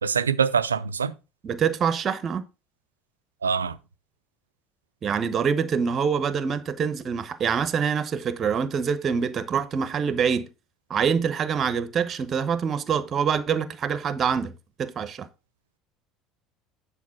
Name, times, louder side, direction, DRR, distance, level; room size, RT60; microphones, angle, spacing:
voice 1, 0.0-1.1 3.4-3.8, right 6 dB, 80° right, 0.4 m, -24 dB
voice 2, 1.4-2.4 5.0-10.5 10.9-14.5 14.8-15.3, right 6 dB, 35° right, 0.9 m, -25 dB
9.6 x 4.2 x 5.7 m
figure-of-eight pair, 65°, 0 cm